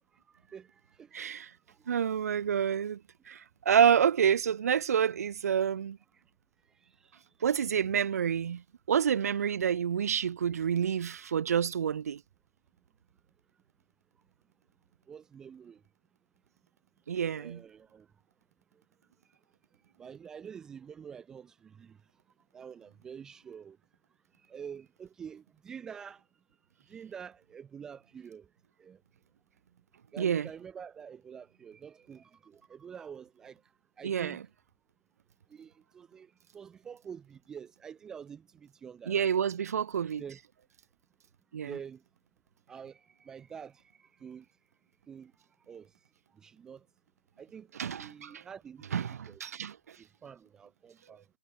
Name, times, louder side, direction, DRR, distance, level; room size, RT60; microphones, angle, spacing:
voice 1, 0.5-1.3 1.8-1.9 6.1-6.2 6.8-7.3 9.5-9.6 11.0-11.2 15.1-15.8 17.3-18.1 20.0-22.0 22.5-23.8 24.5-26.2 26.9-28.5 28.8-29.0 30.1-33.6 34.0-34.4 35.5-39.5 40.2-40.4 41.7-42.0 42.7-44.5 45.1-45.3 45.7-45.9 46.3-46.9 47.4-47.7 48.0-49.4 50.0-51.2, right 7 dB, 5° right, 0.5 m, -47 dB
voice 2, 1.1-1.5 1.9-3.0 3.3-6.0 7.4-8.6 8.9-12.2 17.1-17.6 30.2-30.5 34.0-34.4 39.1-40.2 41.5-41.7 47.8-48.4 48.9-50.0, right 8 dB, 50° right, 0.6 m, -28 dB
hypercardioid pair, 170°, 10 cm